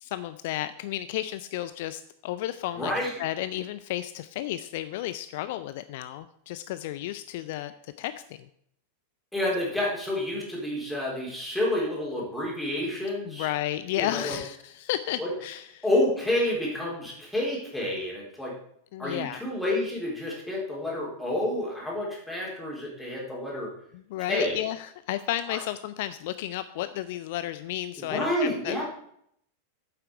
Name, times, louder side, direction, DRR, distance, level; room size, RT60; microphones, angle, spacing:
voice 1, 0.0-2.9 3.2-8.5 13.3-15.9 18.9-19.4 23.9-28.8, left 13 dB, 50° left, 13 dB, 0.4 m, -33 dB
voice 2, 2.8-3.2 9.3-13.5 14.0-14.4 15.2-15.3 15.8-18.5 19.0-23.7 24.3-24.6 25.5-25.6 28.0-28.8, left 1 dB, 5° left, -4 dB, 3.8 m, -29 dB
8.5 x 7.8 x 4.7 m, 0.70 s
figure-of-eight pair, 90°, 0 cm